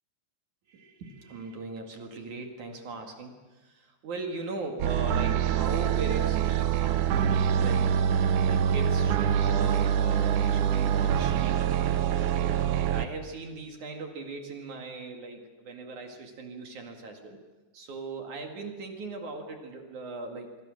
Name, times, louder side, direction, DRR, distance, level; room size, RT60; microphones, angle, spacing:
voice 1, 0.7-8.0 8.4-11.7 12.7-17.4 17.7-20.6, right 3 dB, 50° right, 4 dB, 3.1 m, -39 dB
sound 1, 4.8-13.1, right 9 dB, 80° right, 1.7 m, -25 dB
25.5 x 25.0 x 6.5 m, 1.2 s
omnidirectional pair, 4.8 m